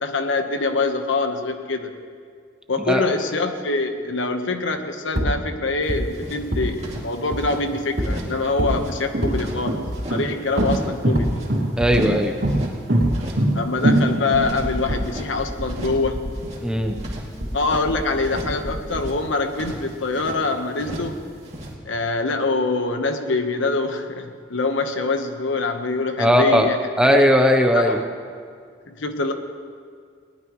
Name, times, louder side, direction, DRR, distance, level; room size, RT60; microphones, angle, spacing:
voice 1, 0.0-1.9 2.7-9.8 10.1-11.3 13.5-16.3 17.5-21.3 21.9-26.8 27.0-27.4 27.7-28.0 28.9-29.3, left 3 dB, 90° left, 6 dB, 1.2 m, -24 dB
sound 1, 5.1-5.3 5.9-6.0 6.5-6.7 7.3-7.4 8.0-8.2 8.6-8.8 9.2-9.4 9.9-10.0 10.6-10.7 11.1-11.3 11.8-12.0 12.4-12.6 13.0-13.2 14.3-16.4 16.8-19.1, equal, 65° right, 3.1 m, -27 dB
sound 2, 5.8-5.9 6.1-7.6 8.0-8.4 8.7-10.2 10.6-11.0 11.2-12.8 13.1-13.5 13.8-15.3 15.7-16.1 16.3-17.9 18.2-18.6 18.9-20.4 20.8-21.2 21.4-21.7, equal, 35° right, 2.4 m, -36 dB
sound 3, 7.7-7.8 8.5-15.0, right 1 dB, 85° right, 2.6 m, -22 dB
voice 2, 11.8-12.3 16.6-17.0 26.2-26.7 27.0-28.0, equal, 5° right, 4 dB, 0.8 m, -17 dB
20.0 x 19.0 x 3.1 m, 2.1 s
head